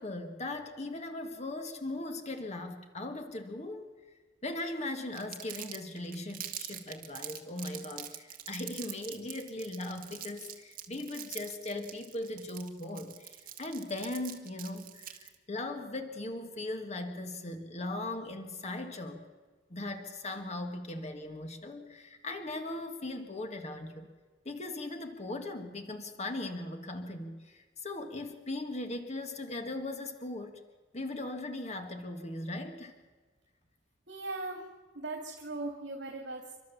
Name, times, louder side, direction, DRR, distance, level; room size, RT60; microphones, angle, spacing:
voice 1, 0.0-3.9 4.4-19.2 19.7-24.1 24.5-30.6 30.9-33.0, left 2 dB, 40° left, 6 dB, 1.9 m, -39 dB
Crumpling crinkling, 5.1-15.4, right 11 dB, 50° right, 2.0 m, -44 dB
voice 2, 34.1-34.6 34.9-36.5, right 2 dB, 80° right, 2 dB, 2.7 m, -39 dB
30.0 x 12.5 x 7.2 m, 1.4 s
head